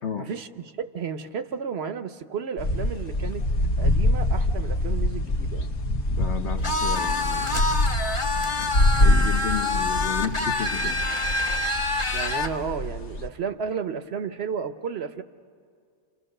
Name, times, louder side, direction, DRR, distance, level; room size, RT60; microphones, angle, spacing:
voice 1, 0.2-3.5 3.8-5.7 12.1-15.2, right 6 dB, 50° right, 10 dB, 0.9 m, -32 dB
sound 1, 2.6-13.3, left 1 dB, 75° left, 1.6 m, -25 dB
voice 2, 6.1-7.8 8.3-11.0, left 7 dB, 50° left, 4 dB, 1.2 m, -33 dB
sound 2, 6.6-12.5, left 2 dB, 25° left, 0.9 m, -27 dB
29.5 x 28.0 x 6.6 m, 2.2 s
omnidirectional pair, 1.6 m